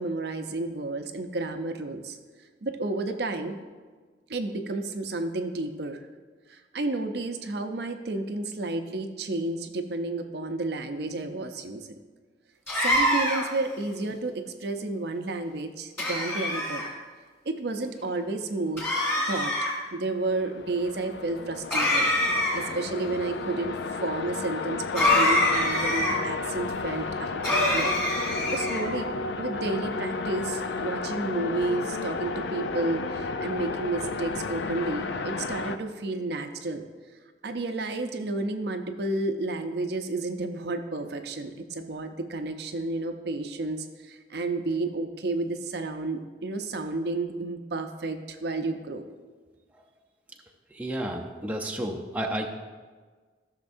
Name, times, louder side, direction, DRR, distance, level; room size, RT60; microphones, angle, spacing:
voice 1, 0.0-2.2 2.6-3.6 4.3-6.0 6.5-12.0 12.8-16.8 17.5-18.8 19.3-19.5 19.9-22.1 22.5-27.9 28.5-36.8 37.4-49.0, right 2 dB, 60° right, 6 dB, 0.6 m, -31 dB
sound 1, 12.7-13.6 16.0-16.9 18.8-19.7 21.7-22.8 24.9-26.1 27.4-28.8, left 1 dB, 10° left, 2.3 m, -25 dB
sound 2, 20.2-35.8, left 4 dB, 70° left, 0.4 m, -33 dB
voice 2, 50.8-52.5, right 1 dB, 10° right, 0 dB, 0.6 m, -31 dB
14.0 x 6.4 x 2.6 m, 1.4 s
head